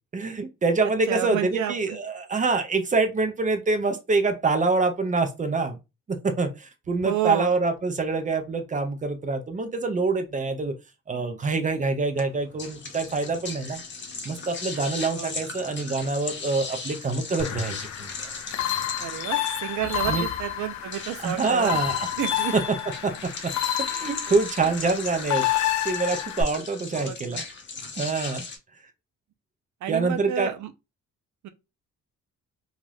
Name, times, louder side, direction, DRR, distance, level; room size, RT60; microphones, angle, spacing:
voice 1, 0.1-5.8 6.1-10.7 11.1-13.8 14.2-18.1 20.1-20.3 21.2-22.1 22.5-22.6 23.0-23.1 23.4-23.5 23.8-25.5 25.8-27.4 28.0-28.5 29.9-30.5, right 3 dB, 25° right, 0.5 m, -25 dB
voice 2, 1.1-1.7 7.0-7.5 15.2-15.5 19.0-21.7 22.2-22.5 26.9-27.4 29.8-30.7 31.4-31.5, right 11 dB, 80° right, 0.5 m, -30 dB
sound 1, 12.2-28.6, left 4 dB, 40° left, 0.8 m, -38 dB
sound 2, 17.4-26.4, left 11 dB, 70° left, 0.5 m, -29 dB
2.6 x 2.4 x 3.2 m
cardioid pair, 125°, 29 cm